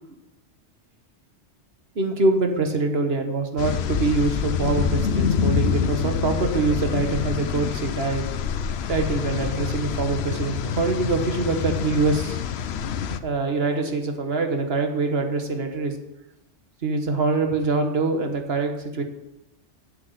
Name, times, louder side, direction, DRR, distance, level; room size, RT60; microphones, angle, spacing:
voice 1, 1.9-8.2 8.9-12.4 13.2-16.0 16.8-19.0, right 3 dB, 60° right, 5 dB, 1.5 m, -24 dB
sound 1, 3.6-13.2, left 7 dB, 65° left, 0.9 m, -26 dB
8.1 x 7.8 x 7.9 m, 0.90 s
omnidirectional pair, 1.2 m